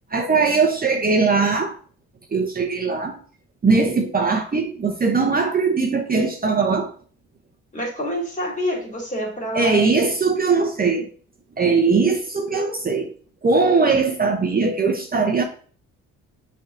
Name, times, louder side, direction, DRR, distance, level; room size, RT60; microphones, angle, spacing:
voice 1, 0.1-1.8 2.3-3.2 3.6-6.9 9.5-11.1 11.6-13.1 13.4-15.4, right 4 dB, 30° right, 0.9 m, -20 dB
voice 2, 7.7-9.8, equal, 25° left, 2.9 m, -27 dB
7.1 x 3.7 x 3.8 m
cardioid pair, 90°, 30 cm